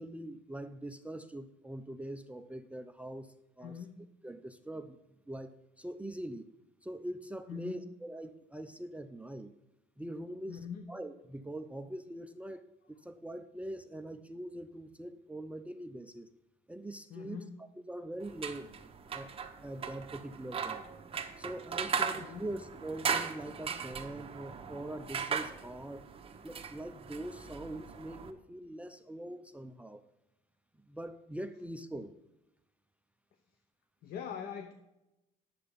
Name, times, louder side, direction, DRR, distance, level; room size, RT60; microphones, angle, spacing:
voice 1, 0.0-3.8 4.2-5.0 5.3-6.5 6.8-9.5 10.0-16.3 16.7-17.4 17.9-18.7 19.1-19.3 19.6-20.8 21.4-26.0 26.4-30.0 30.9-32.1, right 1 dB, 10° right, 8 dB, 0.5 m, -43 dB
voice 2, 3.6-4.1 7.5-7.8 10.5-10.9 17.1-17.6 21.9-22.5 34.0-34.7, left 7 dB, 65° left, 8 dB, 0.9 m, -43 dB
sound 1, 18.2-28.3, right 6 dB, 35° right, 1.1 m, -38 dB
10.0 x 7.7 x 5.1 m, 0.94 s
cardioid pair, 110°, 17 cm